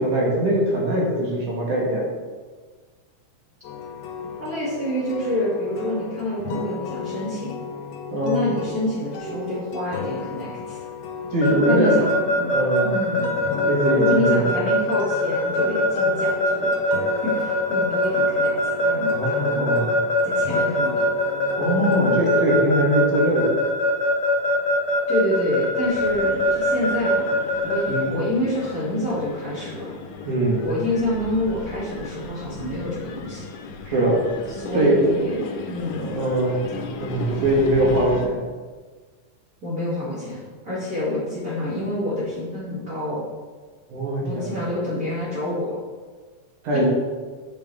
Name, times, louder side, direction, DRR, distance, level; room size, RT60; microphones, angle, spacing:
voice 1, 0.0-2.1 8.1-8.4 11.3-11.9 12.5-12.9 13.4-14.5 19.1-19.9 21.6-23.6 27.9-28.1 30.3-30.6 33.9-34.2 34.7-35.1 36.0-36.6 37.0-38.4 43.9-44.5 46.6-46.9, right 1 dB, 70° right, -3 dB, 3.0 m, -22 dB
sound 1, 3.6-22.5, left 5 dB, 75° left, 2.1 m, -35 dB
voice 2, 4.4-7.5 8.2-10.8 11.5-12.5 12.8-13.3 13.9-16.7 17.2-19.9 20.2-21.0 21.8-22.2 25.1-29.9 30.6-33.4 34.5-36.2 37.2-37.4 39.6-43.2 44.2-45.8 46.7-46.9, left 1 dB, 30° right, -10 dB, 2.8 m, -27 dB
Keyboard (musical) / Alarm, 11.4-28.0, left 1 dB, 60° left, 1.9 m, -21 dB
sound 2, 25.8-38.3, left 4 dB, 90° left, 2.3 m, -36 dB
8.1 x 6.8 x 3.5 m, 1.4 s
omnidirectional pair, 3.6 m